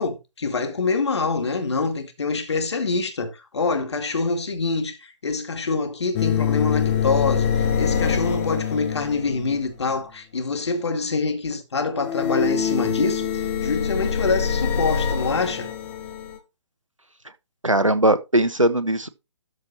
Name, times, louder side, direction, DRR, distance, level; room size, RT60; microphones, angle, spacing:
voice 1, 0.0-15.7, left 4 dB, 60° left, 2.3 m, -25 dB
sound 1, 6.1-9.6 12.0-16.4, left 7 dB, 25° left, 1.6 m, -24 dB
voice 2, 17.6-19.1, right 1 dB, 90° right, 1.4 m, -19 dB
13.0 x 4.7 x 4.2 m
figure-of-eight pair, 135°, 16 cm